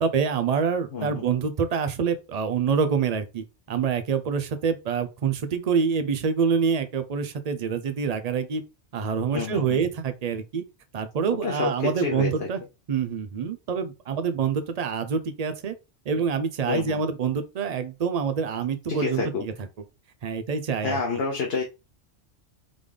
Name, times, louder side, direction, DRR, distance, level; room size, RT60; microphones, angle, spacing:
voice 1, 0.0-8.6 8.9-10.6 10.9-12.6 12.9-15.7 16.1-19.5 20.2-21.0, right 6 dB, 45° right, 0.5 m, -26 dB
voice 2, 0.9-1.2 9.3-9.8 11.3-12.5 16.7-17.0 18.9-19.4 20.8-21.6, left 4 dB, 60° left, 1.0 m, -28 dB
3.8 x 3.5 x 3.3 m
omnidirectional pair, 1.2 m